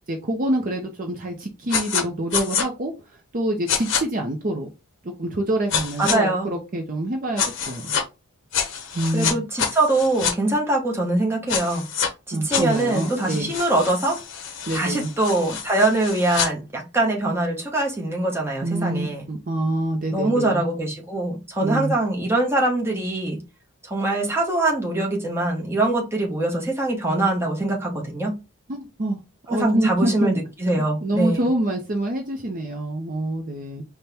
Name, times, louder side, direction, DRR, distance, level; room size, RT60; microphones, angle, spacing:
voice 1, 0.1-2.9 3.3-4.7 5.0-8.0 8.9-9.4 12.3-13.5 14.7-15.1 18.6-20.6 21.6-21.9 28.7-29.2 29.5-30.4 31.0-33.8, right 1 dB, 40° right, 0.5 m, -26 dB
sound 1, 1.7-2.0 2.3-2.7 3.7-4.0 5.7-6.2 7.4-8.0 8.5-10.3 11.5-12.1 12.5-16.5, left 7 dB, 55° left, 0.7 m, -27 dB
voice 2, 6.0-6.5 9.1-11.8 12.3-14.2 14.7-19.2 20.1-23.4 23.8-28.4 29.5-31.4, right 2 dB, 10° right, 0.8 m, -23 dB
4.2 x 2.2 x 3.3 m
head